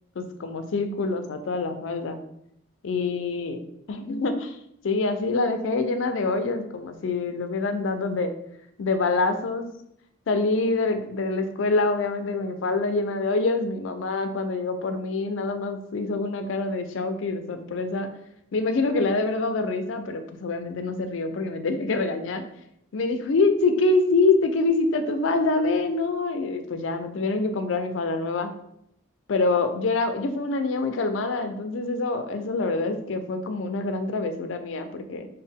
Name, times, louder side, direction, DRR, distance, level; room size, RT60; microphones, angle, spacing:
voice 1, 0.2-2.2 2.8-3.6 3.9-4.6 4.8-8.3 8.8-9.7 10.3-18.1 18.5-22.5 22.9-28.5 29.3-35.3, left 3 dB, 70° left, 8 dB, 0.4 m, -25 dB
4.1 x 2.1 x 3.5 m, 0.75 s
head